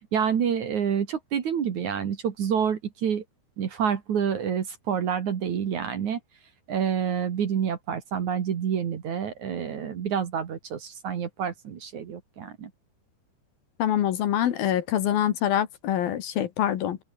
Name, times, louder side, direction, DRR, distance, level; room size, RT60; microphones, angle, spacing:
voice 1, 0.1-3.2 3.6-6.2 6.7-12.7, right 8 dB, 50° right, 2.9 m, -28 dB
voice 2, 13.8-17.0, left 11 dB, 65° left, 3.1 m, -25 dB
open air
omnidirectional pair, 4.9 m